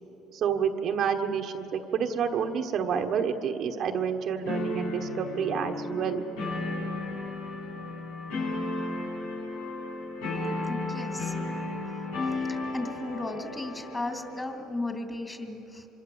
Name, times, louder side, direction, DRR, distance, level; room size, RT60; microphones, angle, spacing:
voice 1, 0.3-6.2, right 7 dB, 50° right, 5 dB, 1.4 m, -29 dB
sound 1, 4.5-14.5, left 2 dB, 85° left, 7.8 m, -34 dB
voice 2, 10.7-11.3 12.5-15.9, left 2 dB, 15° left, 4 dB, 3.0 m, -35 dB
25.5 x 21.5 x 7.2 m, 2.9 s
supercardioid pair, 105°, 0 cm